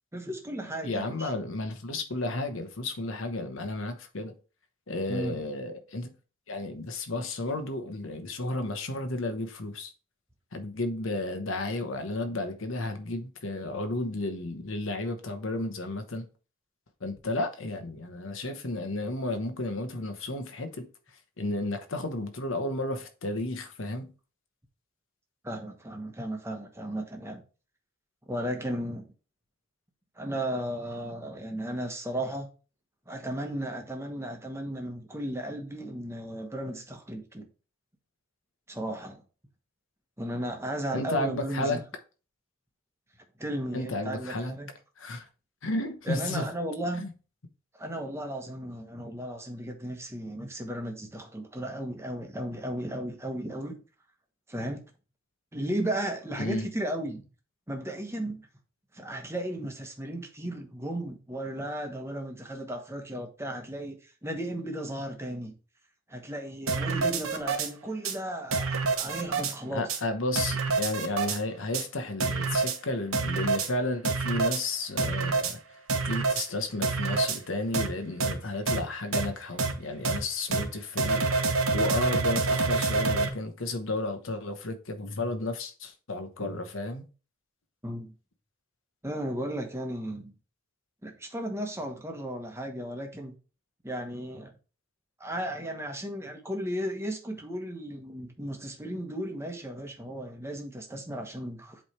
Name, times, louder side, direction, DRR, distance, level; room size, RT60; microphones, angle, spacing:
voice 1, 0.1-1.3 5.1-5.4 25.4-27.4 28.3-29.0 30.2-32.5 33.1-37.5 38.7-39.2 40.2-41.8 43.4-44.7 46.1-47.1 47.7-53.7 54.5-54.8 55.5-57.2 57.7-58.4 58.9-65.5 66.1-69.9 87.8-88.1 89.0-90.3 91.0-93.4 93.8-94.5 95.2-101.8, right 1 dB, 10° right, 1.0 m, -35 dB
voice 2, 0.8-4.3 4.9-6.1 6.5-9.9 10.5-16.3 17.0-20.9 21.4-24.1 40.9-41.8 43.7-44.6 45.0-45.3 45.6-46.5 47.0-47.1 56.4-56.7 69.7-75.6 76.1-87.0, left 2 dB, 65° left, 1.0 m, -33 dB
sound 1, 66.7-67.7 68.0-68.1 68.5-69.5 69.9-70.0 70.4-71.4 71.7-71.8 72.2-72.8 73.1-73.7 74.0-74.6 75.0-75.5 75.9-76.5 76.8-77.4 77.7-77.9 78.2-78.3 78.7-78.8 79.1-79.3 79.6-79.7 80.0-80.2 80.5-80.6 81.0-83.3, right 4 dB, 80° right, 1.1 m, -27 dB
7.9 x 3.3 x 4.3 m
head